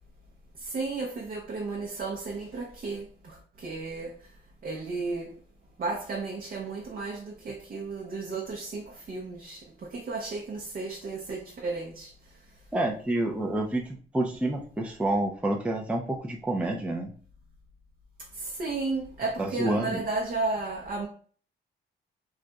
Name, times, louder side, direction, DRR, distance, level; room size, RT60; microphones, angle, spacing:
voice 1, 0.6-4.2 4.6-5.3 5.8-12.1 18.4-21.1, right 3 dB, 45° right, 0.6 m, -33 dB
voice 2, 12.7-17.1 19.4-20.0, right 1 dB, 5° right, 0.4 m, -28 dB
2.4 x 2.2 x 3.9 m
cardioid pair, 90°, 20 cm